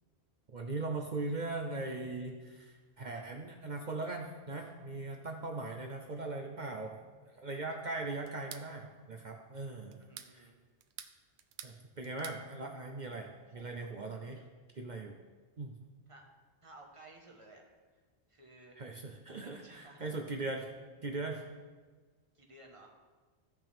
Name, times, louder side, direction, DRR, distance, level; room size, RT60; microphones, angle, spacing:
voice 1, 0.5-7.0 7.4-10.0 10.3-10.5 11.6-14.4 14.7-15.1 15.6-15.7 18.8-20.7 21.0-21.4, right 3 dB, 50° right, 2 dB, 0.8 m, -39 dB
sound 1, 8.3-8.7 9.9-10.3 10.8-11.8 12.0-12.4, right 9 dB, 80° right, 0.9 m, -48 dB
voice 2, 10.0-10.6 13.5-13.9 14.3-14.5 16.1-16.2 16.6-17.6 18.3-18.8 19.3-20.0 22.3-22.9, right 2 dB, 30° right, 0 dB, 1.5 m, -56 dB
15.5 x 6.0 x 3.5 m, 1.4 s
omnidirectional pair, 1.1 m